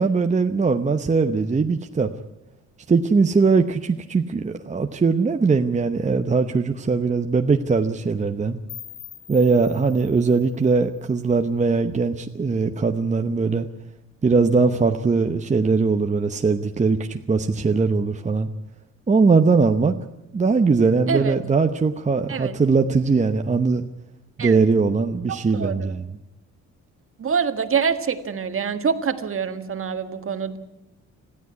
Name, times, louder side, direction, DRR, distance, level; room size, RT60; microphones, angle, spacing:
voice 1, 0.0-2.1 2.9-8.6 9.3-13.7 14.2-18.5 19.1-19.9 20.3-23.8 24.4-26.0, right 4 dB, 25° right, 6 dB, 0.9 m, -20 dB
sound 1, 8.7-11.6, left 11 dB, 85° left, 2.9 m, -44 dB
voice 2, 21.1-21.4 22.3-22.5 24.4-24.6 25.3-25.9 27.2-30.6, right 6 dB, 45° right, 9 dB, 1.7 m, -25 dB
21.0 x 14.0 x 9.6 m, 0.92 s
cardioid pair, 90°, 30 cm